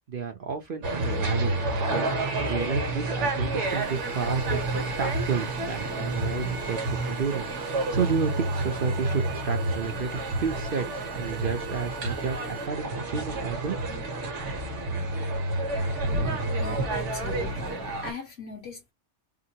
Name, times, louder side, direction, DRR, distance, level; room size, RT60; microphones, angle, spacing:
voice 1, 0.1-1.5 1.9-2.1 2.4-13.8, right 6 dB, 50° right, 0.8 m, -31 dB
sound 1, 0.8-18.1, right 2 dB, 70° right, 1.2 m, -29 dB
sound 2, 3.7-12.7, right 10 dB, 85° right, 1.1 m, -45 dB
voice 2, 16.6-18.9, left 3 dB, 55° left, 1.9 m, -39 dB
3.7 x 2.2 x 2.7 m
omnidirectional pair, 1.3 m